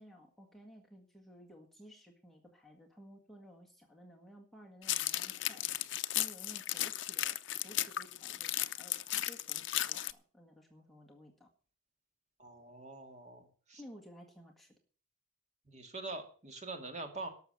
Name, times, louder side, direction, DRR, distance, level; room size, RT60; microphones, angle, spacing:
voice 1, 0.0-5.6 6.1-7.4 7.6-11.5 13.8-14.7, equal, ahead, -1 dB, 1.8 m, -55 dB
sound 1, 4.8-10.1, left 14 dB, 60° left, 0.6 m, -35 dB
voice 2, 12.4-13.8 15.7-17.3, right 2 dB, 35° right, 5 dB, 2.2 m, -44 dB
12.0 x 7.0 x 8.8 m, 0.42 s
head